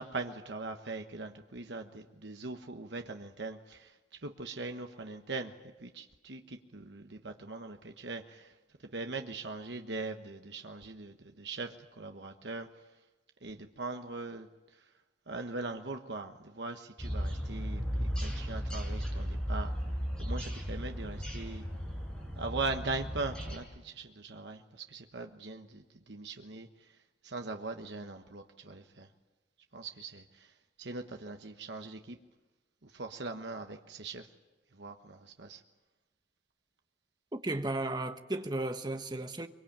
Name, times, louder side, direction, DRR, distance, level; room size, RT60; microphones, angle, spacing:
voice 1, 0.0-3.9 4.2-5.5 5.8-8.5 8.9-12.7 13.4-14.5 15.3-19.7 20.2-21.6 22.4-26.7 27.2-29.1 29.7-30.5 30.8-32.2 32.8-34.3 34.7-35.6, right 3 dB, 75° right, 1.3 m, -40 dB
sound 1, 17.0-23.6, equal, 5° left, 6.1 m, -35 dB
voice 2, 37.3-39.5, right 2 dB, 25° right, 1.2 m, -34 dB
23.5 x 23.0 x 8.8 m
head